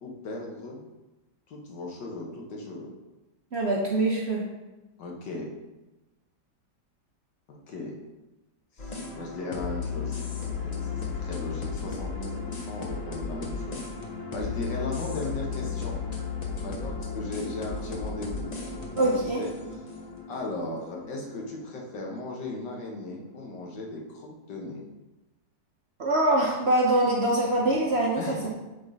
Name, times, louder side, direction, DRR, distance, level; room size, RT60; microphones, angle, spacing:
voice 1, 0.0-0.8 1.5-2.9 5.0-5.5 7.7-8.0 8.8-10.2 10.6-13.8 14.3-16.0 16.6-19.1 19.4-19.5 20.3-24.9 28.2-28.5, left 2 dB, 85° left, -1 dB, 1.8 m, -37 dB
voice 2, 3.5-4.5 19.0-19.4 26.0-28.5, right 1 dB, 50° right, -2 dB, 0.8 m, -24 dB
sound 1, 8.8-22.9, left 5 dB, 45° left, 0.5 m, -35 dB
7.3 x 3.9 x 3.9 m, 1.1 s
omnidirectional pair, 1.9 m